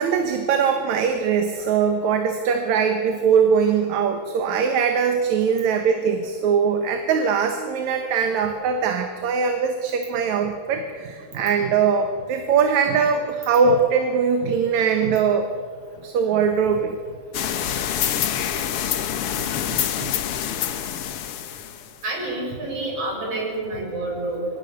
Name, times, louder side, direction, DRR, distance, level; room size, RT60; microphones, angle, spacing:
voice 1, 0.0-15.5 16.0-16.9 19.3-20.1, right 6 dB, 65° right, 5 dB, 2.5 m, -21 dB
sound 1, 17.3-22.0, left 9 dB, 65° left, 1.6 m, -26 dB
voice 2, 22.0-24.6, right 2 dB, 50° right, -1 dB, 7.7 m, -28 dB
27.0 x 25.0 x 6.8 m, 2.2 s
omnidirectional pair, 3.6 m